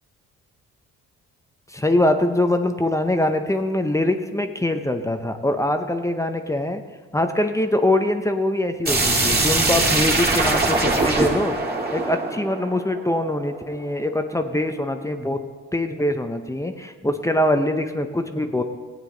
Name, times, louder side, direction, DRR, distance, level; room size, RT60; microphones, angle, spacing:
voice 1, 1.7-6.8 7.1-11.6 11.9-15.4 15.7-18.6, left 1 dB, 10° left, 7 dB, 0.7 m, -23 dB
sound 1, 8.8-13.6, right 2 dB, 30° right, 1.9 m, -22 dB
15.5 x 9.3 x 3.9 m, 1.4 s
cardioid pair, 90°, 30 cm